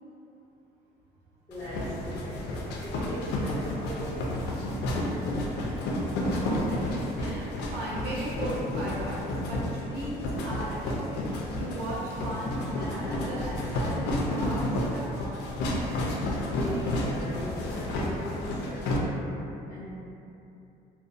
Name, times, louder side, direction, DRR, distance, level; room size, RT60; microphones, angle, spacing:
sound 1, 1.5-19.0, left 1 dB, 80° left, 0.4 m, -31 dB
voice 1, 1.5-4.5 16.6-19.9, equal, 20° left, -14 dB, 0.7 m, -39 dB
voice 2, 6.2-15.4, right 1 dB, 80° right, -7 dB, 0.6 m, -37 dB
2.4 x 2.1 x 2.5 m, 2.8 s
cardioid pair, 110°, 17 cm